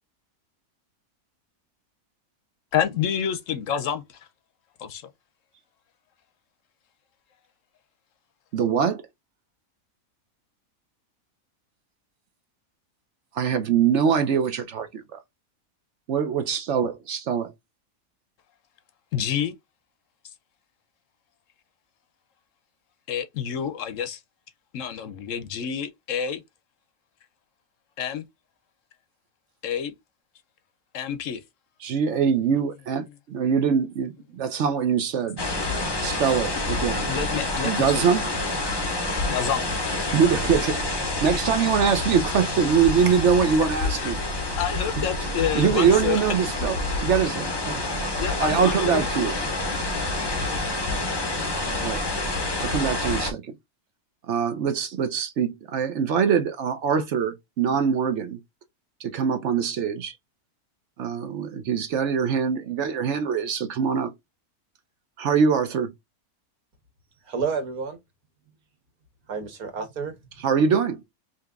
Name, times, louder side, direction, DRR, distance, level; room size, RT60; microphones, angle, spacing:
voice 1, 2.7-4.0 4.8-5.0 19.1-19.5 23.1-24.2 24.7-26.4 28.0-28.2 29.6-29.9 30.9-31.4 37.1-38.1 39.3-39.6 44.0-44.2 44.6-46.2 48.2-49.1 50.2-50.4, left 8 dB, 65° left, 0.9 m, -28 dB
voice 2, 8.5-9.0 13.3-15.2 16.1-17.5 31.8-35.4 36.0-37.1 37.6-38.2 40.1-40.9 41.2-44.2 45.5-47.8 48.2-49.3 51.8-52.0 52.6-53.5 54.3-58.4 59.0-60.2 61.0-64.1 65.2-65.9 70.4-71.0, right 7 dB, 60° right, 0.8 m, -23 dB
sound 1, 35.4-53.3, left 2 dB, 30° left, 0.5 m, -28 dB
voice 3, 67.2-68.0 69.3-70.4, right 5 dB, 80° right, 1.6 m, -30 dB
5.0 x 2.8 x 2.4 m
omnidirectional pair, 1.6 m